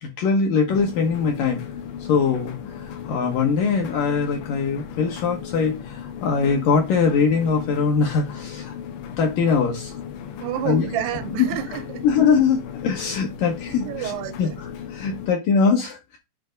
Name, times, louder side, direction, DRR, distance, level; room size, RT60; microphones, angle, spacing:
voice 1, 0.0-1.6 2.1-8.8 9.2-9.9 10.6-10.9 11.4-11.5 12.0-14.1 14.4-16.2, left 5 dB, 70° left, 2.2 m, -22 dB
sound 1, 0.7-15.3, left 8 dB, 90° left, 3.3 m, -36 dB
voice 2, 10.4-12.0 13.7-14.6, right 12 dB, 80° right, 2.6 m, -30 dB
7.9 x 3.3 x 5.1 m
omnidirectional pair, 4.9 m